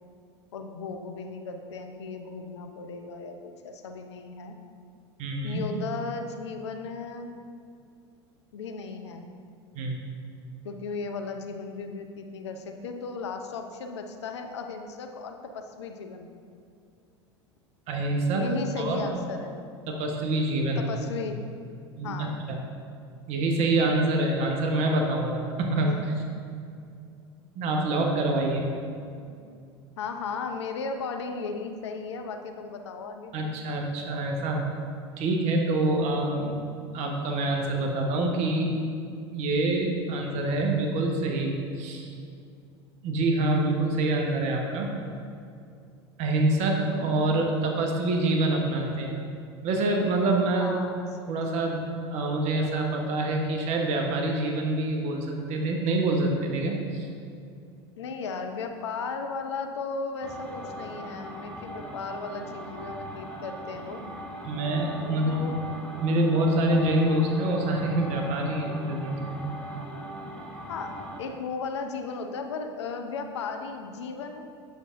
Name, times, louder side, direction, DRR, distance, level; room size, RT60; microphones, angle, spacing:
voice 1, 0.5-4.6 5.4-7.3 8.5-9.3 10.6-16.3 18.3-19.6 20.8-21.4 22.0-22.4 25.8-26.0 29.3-29.4 30.0-33.3 46.8-47.1 50.6-51.1 58.0-64.0 65.0-65.5 65.8-65.9 70.7-74.5, left 4 dB, 80° left, 6 dB, 0.6 m, -36 dB
voice 2, 5.2-5.7 9.7-10.0 17.9-18.5 18.8-19.2 19.9-20.9 22.0-22.6 23.3-26.0 27.6-28.6 33.3-34.6 35.2-36.6 36.9-38.8 39.3-42.1 43.0-45.0 46.2-49.1 49.6-50.9 51.3-57.1 64.4-65.4 66.0-69.4, right 2 dB, 50° right, 1 dB, 1.0 m, -26 dB
sound 1, 60.2-71.2, equal, 5° left, 1.0 m, -40 dB
7.8 x 6.7 x 2.5 m, 2.4 s
hypercardioid pair, 80°, 14 cm